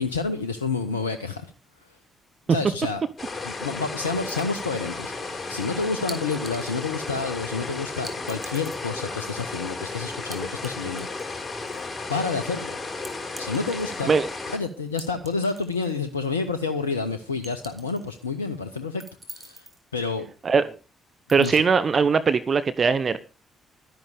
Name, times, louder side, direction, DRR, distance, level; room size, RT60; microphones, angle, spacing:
voice 1, 0.0-1.5 2.5-3.0 3.4-11.3 12.1-12.8 13.4-14.1 14.5-19.0 19.3-19.6 19.9-20.3 21.3-21.6, left 4 dB, 90° left, 11 dB, 0.8 m, -29 dB
sound 1, 3.2-14.6, left 3 dB, 25° left, 5.3 m, -34 dB
sound 2, 4.3-4.8 6.1-6.8 8.0-8.9 10.3-10.7 11.0-11.8 13.0-14.1 15.0-16.0 16.3-16.4 17.4-18.2 19.0-19.8 21.3-21.6, right 2 dB, 20° right, 3.0 m, -43 dB
voice 2, 20.4-20.8 21.3-23.2, right 5 dB, 45° right, 13 dB, 0.9 m, -20 dB
12.5 x 10.5 x 5.0 m, 0.33 s
figure-of-eight pair, 40°, 0 cm